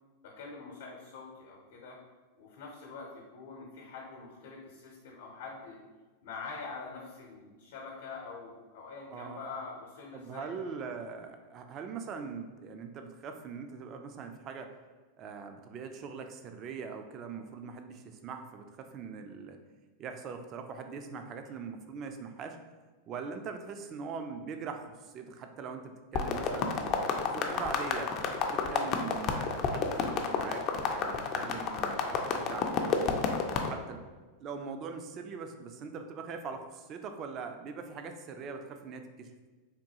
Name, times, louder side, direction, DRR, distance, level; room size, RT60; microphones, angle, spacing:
voice 1, 0.2-2.0 2.4-5.8 6.2-10.7, left 4 dB, 75° left, -1 dB, 0.7 m, -45 dB
voice 2, 9.1-9.4 10.1-14.8 15.2-19.6 20.0-22.6 23.1-28.1 28.5-33.2 33.7-34.0 34.4-39.3, right 5 dB, 40° right, 6 dB, 0.3 m, -42 dB
sound 1, 26.1-33.7, left 6 dB, 40° left, 0.4 m, -30 dB
3.5 x 2.3 x 2.8 m, 1.3 s
hypercardioid pair, 120°, 0 cm